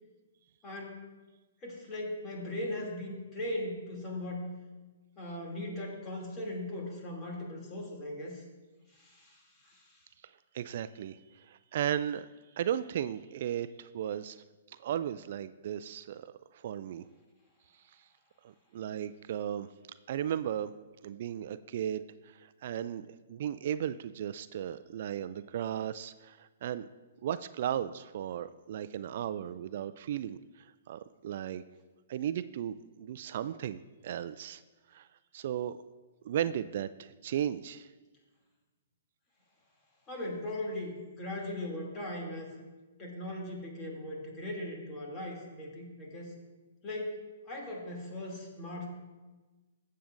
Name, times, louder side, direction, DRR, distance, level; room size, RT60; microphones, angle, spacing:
voice 1, 0.6-1.1 1.6-4.5 5.2-8.4 8.9-10.0 40.1-42.5 43.0-46.3 46.8-47.2 47.5-48.9, left 1 dB, 25° left, -2 dB, 2.6 m, -39 dB
voice 2, 10.5-12.3 12.6-14.4 14.8-16.3 16.6-17.0 18.7-19.7 20.1-20.7 21.0-26.9 27.2-30.4 30.9-31.6 32.1-34.6 34.9-35.1 35.3-35.8 36.2-37.9, right 10 dB, 55° right, 14 dB, 0.3 m, -35 dB
17.0 x 7.5 x 2.6 m, 1.2 s
hypercardioid pair, 135°, 0 cm